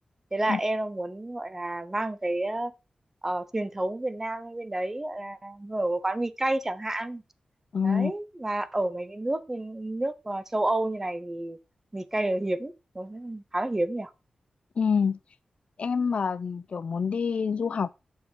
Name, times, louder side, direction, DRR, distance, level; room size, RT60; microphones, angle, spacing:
voice 1, 0.3-2.7 3.2-7.2 7.8-11.6 11.9-14.1, right 1 dB, 15° right, 0.6 m, -30 dB
voice 2, 7.7-8.1 14.8-15.2 15.8-17.9, left 6 dB, 60° left, 0.4 m, -26 dB
7.2 x 5.6 x 4.5 m
wide cardioid pair, 160°, 2 cm